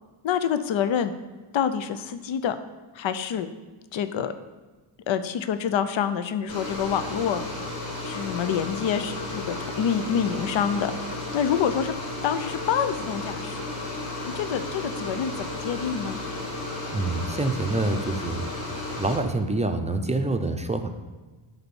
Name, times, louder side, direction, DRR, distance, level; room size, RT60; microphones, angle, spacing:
voice 1, 0.2-1.1 1.5-2.6 2.9-3.5 3.9-4.3 5.1-7.4 8.0-11.9 12.2-13.6 14.2-16.2, left 8 dB, 65° left, 11 dB, 0.7 m, -27 dB
sound 1, 6.5-19.2, left 2 dB, 45° left, 3.3 m, -33 dB
voice 2, 16.9-18.5 19.0-20.9, right 2 dB, 15° right, 6 dB, 0.6 m, -26 dB
11.0 x 4.2 x 7.0 m, 1.3 s
wide cardioid pair, 145°, 49 cm